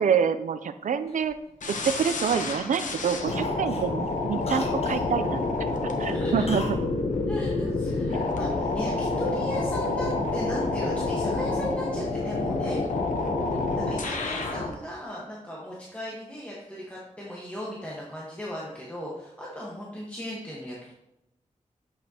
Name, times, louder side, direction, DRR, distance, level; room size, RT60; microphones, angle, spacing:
voice 1, 0.0-1.3 1.7-5.5 6.0-6.6 8.1-8.2, right 7 dB, 85° right, 11 dB, 0.5 m, -27 dB
Cough, 1.1-2.3 2.7-2.9 3.3-5.1 6.5-6.8 7.1-7.2, left 2 dB, 55° left, 1.4 m, -40 dB
sound 1, 1.6-14.7, left 3 dB, 90° left, 0.9 m, -28 dB
voice 2, 3.3-3.7 6.0-6.3 7.2-12.8 13.7-20.9, equal, 10° left, -6 dB, 1.4 m, -36 dB
8.1 x 6.6 x 2.9 m, 0.86 s
wide cardioid pair, 120°, 13 cm